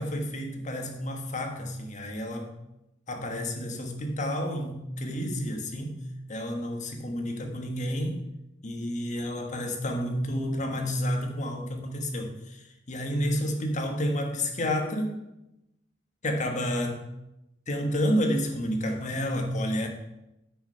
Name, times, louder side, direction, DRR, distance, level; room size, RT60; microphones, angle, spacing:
voice 1, 0.0-2.5 3.1-6.0 6.3-8.2 8.6-15.2 16.2-17.0 17.7-19.9, equal, 40° left, 4 dB, 1.4 m, -30 dB
8.7 x 6.4 x 5.5 m, 0.88 s
head